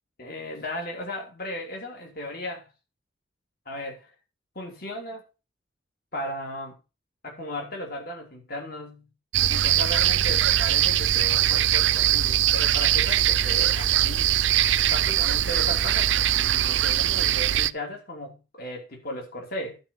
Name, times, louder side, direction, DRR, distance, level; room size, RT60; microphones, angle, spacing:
voice 1, 0.2-2.7 3.6-4.1 4.5-5.2 6.1-6.8 7.2-9.1 9.5-14.4 14.9-19.8, left 1 dB, 50° left, 3.2 m, -36 dB
sound 1, 9.3-17.7, right 12 dB, 80° right, 0.5 m, -22 dB
11.5 x 4.5 x 7.1 m
head